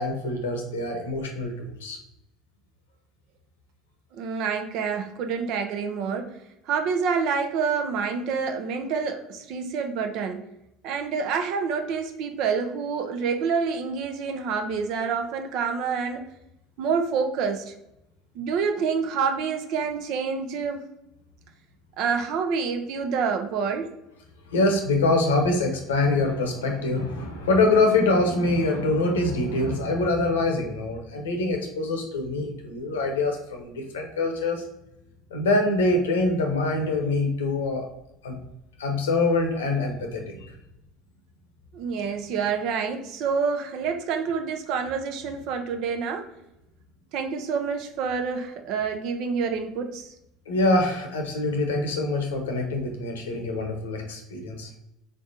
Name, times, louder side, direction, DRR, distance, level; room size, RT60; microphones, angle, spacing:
voice 1, 0.0-2.0 24.5-34.6 35.3-37.8 38.2-38.4 38.8-40.5 50.5-54.7, left 2 dB, 85° left, 3 dB, 0.8 m, -24 dB
voice 2, 4.1-6.3 6.7-10.5 10.8-16.3 16.8-17.7 18.3-20.9 22.0-23.9 41.7-46.3 47.1-50.1, right 5 dB, 60° right, 6 dB, 0.6 m, -27 dB
3.7 x 3.4 x 2.7 m, 0.85 s
hypercardioid pair, 80°, 0 cm